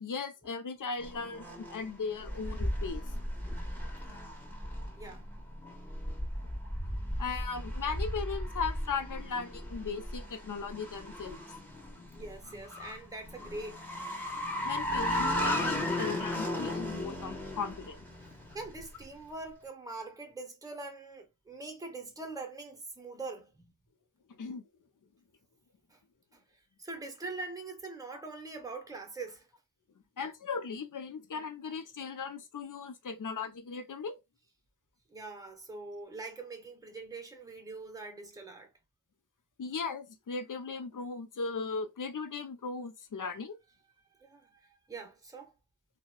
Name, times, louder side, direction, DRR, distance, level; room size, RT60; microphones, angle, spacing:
voice 1, 0.0-3.0 7.2-11.4 14.6-18.0 24.3-24.6 30.2-34.2 39.6-43.6, left 5 dB, 60° left, 0.6 m, -37 dB
sound 1, 1.0-19.0, left 1 dB, 5° left, 1.4 m, -36 dB
voice 2, 12.1-13.9 18.5-23.7 25.9-26.0 26.3-26.4 26.8-29.5 35.1-38.7 44.2-45.5, right 3 dB, 10° right, 0.7 m, -43 dB
2.8 x 2.1 x 2.2 m
cardioid pair, 45°, 35 cm